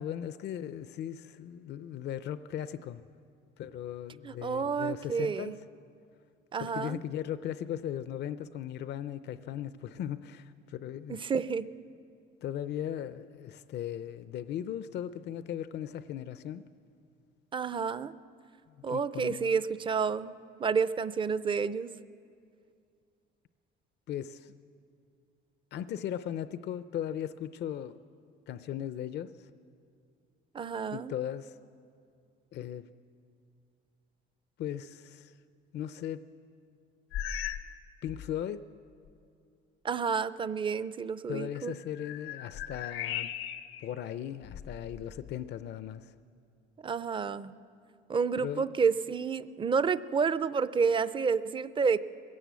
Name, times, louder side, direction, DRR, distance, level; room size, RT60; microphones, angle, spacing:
voice 1, 0.0-3.0 3.6-5.6 6.6-11.2 12.4-16.6 18.9-19.5 24.1-24.5 25.7-28.0 28.5-29.5 30.9-31.6 32.5-32.9 34.6-35.4 35.7-36.2 38.0-38.7 41.3-43.3 43.8-46.1 48.4-48.7, left 10 dB, 55° left, 0.5 m, -37 dB
voice 2, 4.2-5.5 6.5-7.0 11.1-11.7 17.5-18.1 18.8-20.3 20.6-21.9 30.5-31.1 39.8-41.7 46.8-47.5 48.1-52.0, right 5 dB, 25° right, 0.5 m, -30 dB
sound 1, 37.1-37.8 38.0-38.4 39.1-39.2 41.5-43.9 44.4-45.4, left 10 dB, 85° left, 1.0 m, -38 dB
21.0 x 16.5 x 8.3 m
cardioid pair, 130°, 21 cm